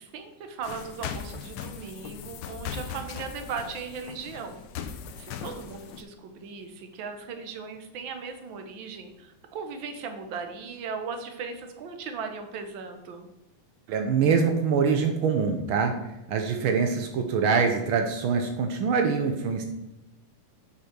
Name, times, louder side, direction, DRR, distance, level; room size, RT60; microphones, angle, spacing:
voice 1, 0.0-13.3, right 5 dB, 65° right, 6 dB, 1.2 m, -38 dB
sound 1, 0.6-6.0, left 7 dB, 70° left, 1.5 m, -39 dB
voice 2, 13.9-19.6, right 5 dB, 85° right, 5 dB, 1.1 m, -24 dB
8.2 x 5.8 x 5.9 m, 0.92 s
omnidirectional pair, 3.5 m